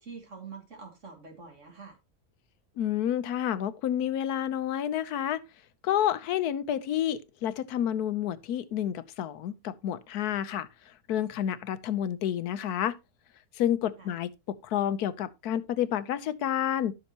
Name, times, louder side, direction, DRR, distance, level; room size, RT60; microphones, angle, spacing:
voice 1, 0.0-2.0 14.0-14.1, right 5 dB, 55° right, 2.4 m, -45 dB
voice 2, 2.8-5.4 5.8-10.7 11.1-13.0 13.6-16.9, left 10 dB, 90° left, 1.3 m, -29 dB
13.5 x 6.4 x 2.9 m
omnidirectional pair, 1.6 m